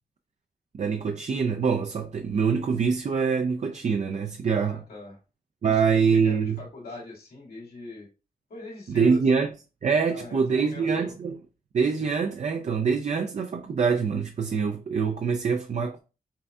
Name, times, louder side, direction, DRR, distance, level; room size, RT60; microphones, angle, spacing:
voice 1, 0.7-4.8 5.6-6.6 8.9-9.5 9.8-11.4 11.7-16.0, right 5 dB, 50° right, 0.4 m, -24 dB
voice 2, 4.4-5.2 5.6-8.1 8.5-9.2 10.1-11.1, left 2 dB, 90° left, 1.8 m, -42 dB
5.5 x 2.6 x 2.3 m
cardioid pair, 65°, 15 cm